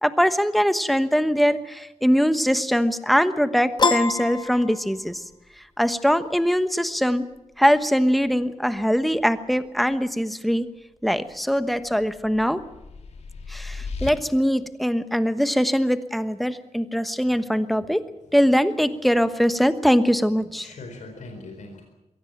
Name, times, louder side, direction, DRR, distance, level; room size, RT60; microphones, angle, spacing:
voice 1, 0.0-5.2 5.8-7.3 7.6-10.7 11.0-12.6 13.5-18.0 18.3-20.7, equal, ahead, 11 dB, 1.2 m, -22 dB
Piano, 3.8-5.3, left 3 dB, 35° left, 1.3 m, -24 dB
sound 1, 11.3-14.1, left 4 dB, 60° left, 1.8 m, -37 dB
voice 2, 20.4-21.9, left 2 dB, 85° left, 3 dB, 4.4 m, -41 dB
22.5 x 17.0 x 9.0 m, 0.97 s
wide cardioid pair, 120°, 12 cm